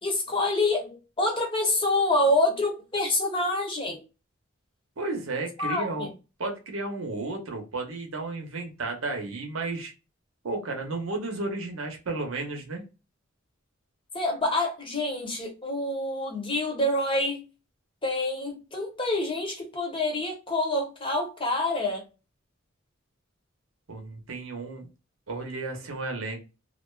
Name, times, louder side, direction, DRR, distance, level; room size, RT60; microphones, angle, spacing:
voice 1, 0.0-4.0 5.6-6.1 14.1-17.4 18.0-22.0, left 2 dB, 25° left, 0.8 m, -27 dB
voice 2, 5.0-6.1 6.4-9.9 10.4-12.8 23.9-24.9 25.3-26.4, right 3 dB, 80° right, 0.8 m, -33 dB
2.4 x 2.2 x 2.3 m
head